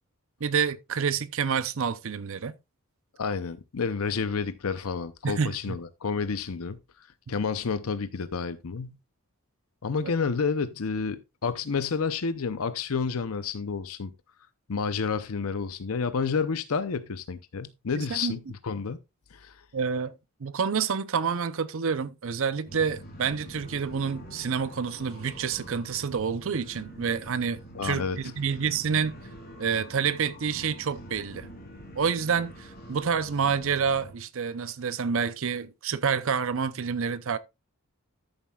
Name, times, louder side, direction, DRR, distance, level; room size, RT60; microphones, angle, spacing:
voice 1, 0.4-2.5 5.2-5.8 18.0-18.4 19.7-20.1 20.4-29.2 29.6-31.5 32.0-37.4, right 6 dB, 60° right, 0.6 m, -28 dB
voice 2, 3.2-6.8 7.3-9.0 9.8-14.1 14.7-19.0 19.3-19.5 27.7-28.2, left 5 dB, 75° left, 0.6 m, -30 dB
sound 1, 22.7-34.1, equal, 45° left, 4.1 m, -45 dB
13.0 x 7.2 x 2.3 m
head